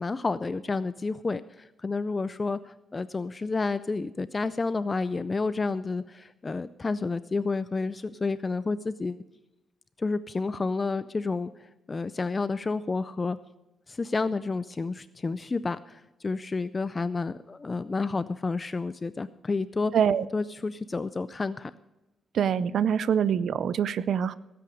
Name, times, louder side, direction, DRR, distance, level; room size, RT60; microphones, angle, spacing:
voice 1, 0.0-9.2 10.0-11.5 11.9-13.4 13.9-20.0 20.3-21.7, left 3 dB, 25° left, 14 dB, 0.3 m, -30 dB
voice 2, 19.9-20.3 22.3-24.3, right 8 dB, 65° right, 17 dB, 0.4 m, -24 dB
18.0 x 8.5 x 5.3 m, 0.98 s
cardioid pair, 125°, 0 cm